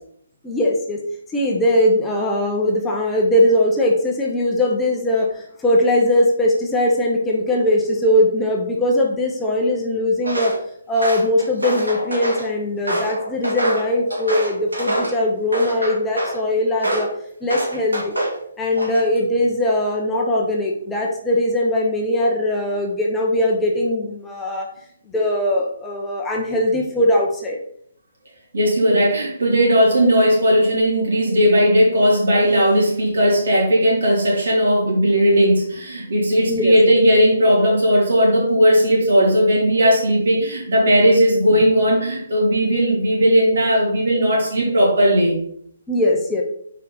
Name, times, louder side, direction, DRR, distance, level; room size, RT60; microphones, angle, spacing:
voice 1, 0.4-1.0 1.3-10.6 10.9-17.1 17.4-18.1 18.6-24.7 25.1-27.6 36.5-36.7 45.9-46.4, left 1 dB, 10° left, -1 dB, 0.8 m, -20 dB
Walk footsteps, 10.2-10.6 11.0-12.5 12.9-15.2 15.5-16.4 16.8-17.1 17.5-18.4 18.7-19.2, right 1 dB, 75° right, 2.6 m, -25 dB
voice 2, 28.5-45.4, equal, 55° right, -3 dB, 3.1 m, -17 dB
6.9 x 4.7 x 3.9 m, 0.67 s
figure-of-eight pair, 135°, 0 cm